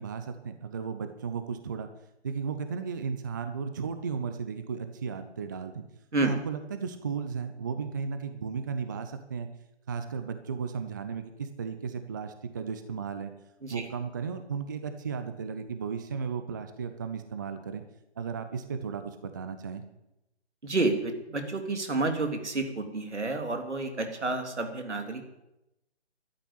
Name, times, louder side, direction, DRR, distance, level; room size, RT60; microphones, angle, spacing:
voice 1, 0.0-1.9 2.2-5.9 6.2-9.5 9.9-13.3 13.7-17.8 18.2-19.8, right 6 dB, 15° right, 8 dB, 0.5 m, -35 dB
voice 2, 20.6-25.2, right 2 dB, 75° right, 5 dB, 3.2 m, -30 dB
12.5 x 9.1 x 9.9 m, 0.90 s
figure-of-eight pair, 145°, 35 cm